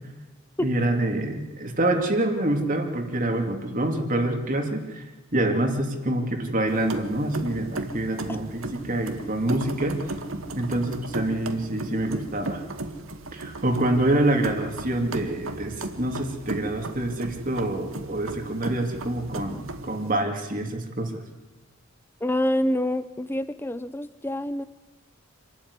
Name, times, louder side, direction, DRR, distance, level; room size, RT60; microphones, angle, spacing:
voice 1, 0.6-5.0 5.3-10.1 10.6-12.6 13.3-21.1, right 1 dB, 40° right, 3 dB, 2.7 m, -26 dB
sound 1, 6.7-20.1, right 2 dB, 75° right, 1.9 m, -36 dB
voice 2, 22.2-24.6, left 1 dB, 10° left, 13 dB, 0.7 m, -26 dB
27.0 x 13.0 x 9.8 m, 1.1 s
head